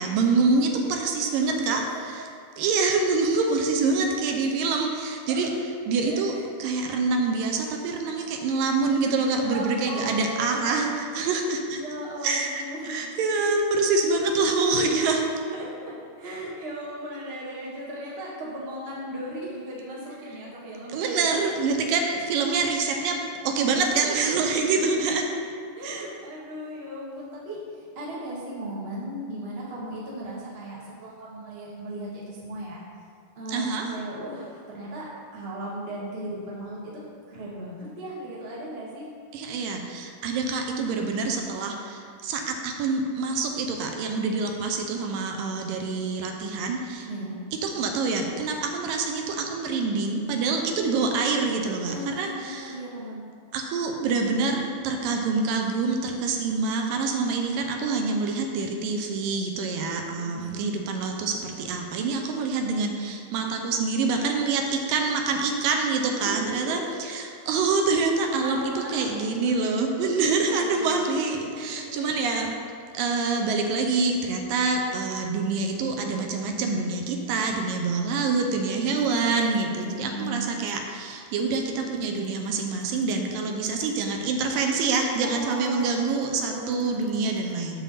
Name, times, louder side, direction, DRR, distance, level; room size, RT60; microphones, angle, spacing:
voice 1, 0.0-2.3 2.6-5.5 5.9-6.3 6.6-11.8 12.2-15.2 20.9-23.2 23.4-25.3 25.8-26.1 33.5-33.9 39.3-47.1 47.6-52.8 53.5-72.5 72.9-87.8, right 4 dB, 80° right, 2 dB, 2.3 m, -26 dB
voice 2, 1.2-2.0 5.3-5.4 6.0-6.4 9.3-11.2 11.7-13.2 13.5-13.6 15.5-21.5 24.0-24.8 25.8-32.8 33.3-37.0 37.3-39.1 47.1-47.3 51.8-53.2 60.2-60.9 66.2-67.0 68.2-69.6 70.0-72.5 78.6-80.4 85.2-87.6, right 1 dB, 40° right, -6 dB, 0.8 m, -37 dB
7.4 x 7.3 x 4.1 m, 2.2 s
omnidirectional pair, 4.1 m